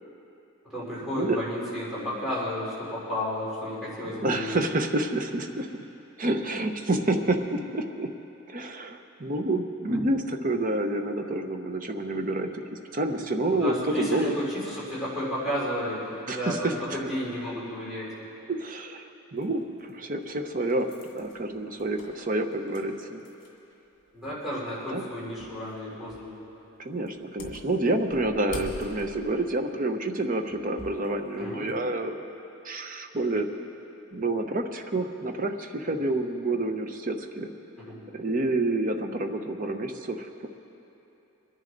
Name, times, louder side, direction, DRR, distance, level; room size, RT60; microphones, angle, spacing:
voice 1, 0.6-4.6 9.9-10.0 13.5-18.1 24.1-26.3 31.4-31.8 37.8-38.0, equal, ahead, -10 dB, 3.8 m, -32 dB
voice 2, 4.0-5.8 6.2-8.1 8.5-12.6 12.9-14.3 16.3-17.0 18.5-23.2 24.9-25.0 26.8-32.2 32.6-33.5 34.1-37.5 38.1-40.5, right 2 dB, 40° right, 6 dB, 0.8 m, -28 dB
sound 1, 19.4-19.5 20.2-23.7 24.0-24.1 25.4-25.7 26.1-26.4 27.1-31.1 31.5-31.7, left 2 dB, 55° left, 2.0 m, -44 dB
23.5 x 10.5 x 3.9 m, 2.9 s
head